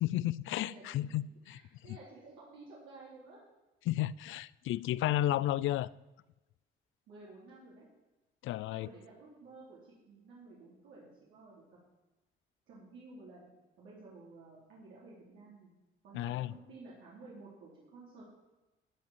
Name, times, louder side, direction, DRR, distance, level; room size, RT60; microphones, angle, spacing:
voice 1, 0.0-1.2 1.5-1.6 3.9-5.9 8.4-8.9 16.1-16.5, left 14 dB, 80° left, 20 dB, 0.4 m, -32 dB
voice 2, 0.6-3.4 7.1-7.8 8.7-11.6 12.7-15.7 16.0-18.2, right 3 dB, 90° right, -7 dB, 3.9 m, -53 dB
13.5 x 5.2 x 9.1 m, 1.1 s
cardioid pair, 90°, 20 cm